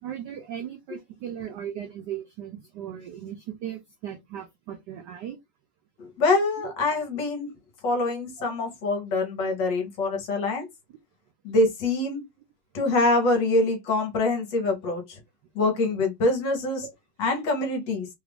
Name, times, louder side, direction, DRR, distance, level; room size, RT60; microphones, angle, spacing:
voice 1, 0.0-5.4 6.6-6.7, right 10 dB, 80° right, 0.9 m, -37 dB
voice 2, 6.0-7.5 7.8-10.7 11.4-12.2 12.7-15.2 15.5-16.8 17.2-18.1, left 2 dB, 65° left, 1.4 m, -25 dB
3.4 x 2.3 x 3.4 m
omnidirectional pair, 2.4 m